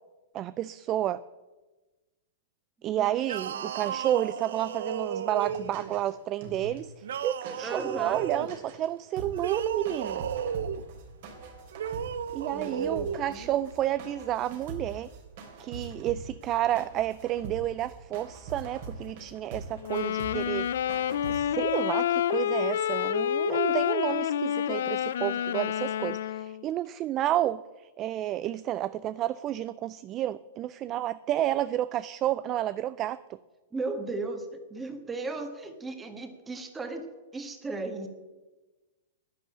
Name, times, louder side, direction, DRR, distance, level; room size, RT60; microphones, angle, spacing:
voice 1, 0.3-1.2 2.8-10.3 12.3-15.1 15.6-21.0 21.3-33.4, right 13 dB, 30° right, 17 dB, 0.3 m, -31 dB
voice 2, 2.9-4.0 7.6-8.3 12.5-13.5 33.7-38.1, right 3 dB, 10° right, 7 dB, 1.5 m, -37 dB
sound 1, 3.2-6.0 7.0-8.5 9.3-10.8 11.7-13.2, right 8 dB, 75° right, 0.7 m, -34 dB
sound 2, 5.5-6.1 6.4-6.8 7.1-7.2 7.4-8.9 9.2-21.4, right 3 dB, 55° right, 3.2 m, -44 dB
sound 3, 19.8-26.6, left 10 dB, 70° left, 0.5 m, -28 dB
10.5 x 9.7 x 8.5 m, 1.2 s
hypercardioid pair, 150°, 0 cm